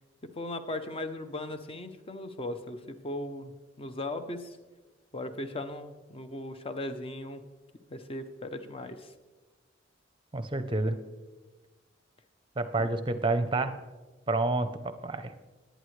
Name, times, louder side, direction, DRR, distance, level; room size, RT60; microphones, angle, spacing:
voice 1, 0.2-3.5 3.8-4.6 5.1-7.4 7.9-9.1 12.8-12.9, left 1 dB, 30° left, 9 dB, 0.7 m, -38 dB
voice 2, 10.3-11.0 12.6-13.8 14.3-15.3, right 2 dB, 25° right, 10 dB, 0.7 m, -29 dB
20.0 x 9.1 x 3.2 m, 1.2 s
head